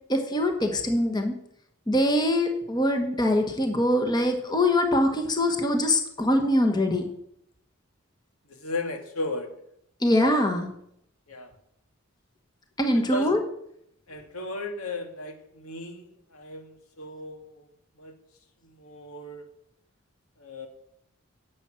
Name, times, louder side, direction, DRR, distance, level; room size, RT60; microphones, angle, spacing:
voice 1, 0.1-1.3 1.9-7.0 10.0-10.7 12.8-13.4, left 1 dB, 20° left, 4 dB, 1.3 m, -23 dB
voice 2, 8.4-9.5 11.3-11.5 12.9-13.3 14.1-17.7 18.0-18.1 18.6-19.5 20.4-20.7, left 2 dB, 90° left, 4 dB, 2.1 m, -35 dB
10.5 x 7.6 x 8.9 m, 0.75 s
head